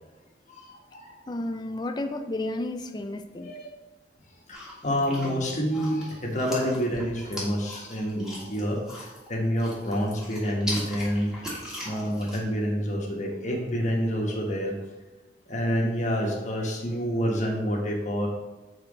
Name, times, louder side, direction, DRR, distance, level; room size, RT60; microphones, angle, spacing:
voice 1, 0.5-1.2 3.4-3.7 4.5-11.3 11.8-14.7 15.5-18.3, equal, 45° left, -1 dB, 1.3 m, -28 dB
voice 2, 1.3-3.5, left 1 dB, 25° left, 7 dB, 0.4 m, -32 dB
sound 1, 4.5-9.3 9.6-12.4, left 1 dB, 5° right, 1.8 m, -39 dB
7.1 x 4.2 x 4.0 m, 1.2 s
head